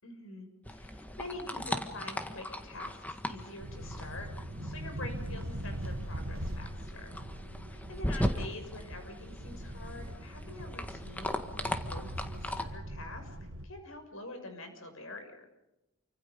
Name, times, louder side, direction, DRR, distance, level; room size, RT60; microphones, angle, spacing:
voice 1, 0.0-4.3 4.6-7.2 7.7-13.4 13.6-15.5, left 2 dB, 70° left, 5 dB, 6.5 m, -46 dB
sound 1, 0.6-12.6, left 1 dB, 5° left, 1.6 m, -38 dB
sound 2, 3.6-13.7, right 1 dB, 70° right, 1.9 m, -41 dB
29.0 x 25.5 x 5.3 m, 0.92 s
head